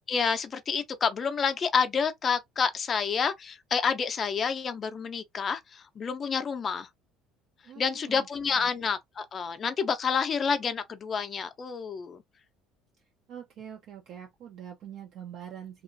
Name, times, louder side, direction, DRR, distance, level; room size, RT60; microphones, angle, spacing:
voice 1, 0.1-6.9 7.8-12.2, left 6 dB, 30° left, 0.5 m, -29 dB
voice 2, 7.6-8.7 13.3-15.8, right 9 dB, 50° right, 0.6 m, -44 dB
2.9 x 2.4 x 2.6 m
cardioid pair, 150°, 0 cm